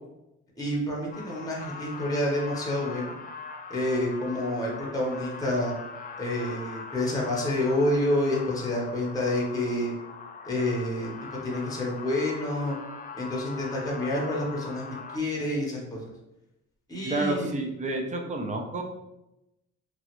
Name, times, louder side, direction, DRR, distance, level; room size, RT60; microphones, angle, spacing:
voice 1, 0.6-3.1 3.7-5.7 6.2-9.9 10.4-11.1 11.4-12.8 13.1-14.8 15.1-16.0 16.9-17.6, left 1 dB, 10° left, -3 dB, 0.8 m, -28 dB
sound 1, 1.1-15.2, left 4 dB, 30° left, 0.4 m, -41 dB
voice 2, 17.0-18.8, right 2 dB, 25° right, 3 dB, 0.5 m, -29 dB
3.0 x 2.4 x 2.9 m, 0.90 s
cardioid pair, 90°, 30 cm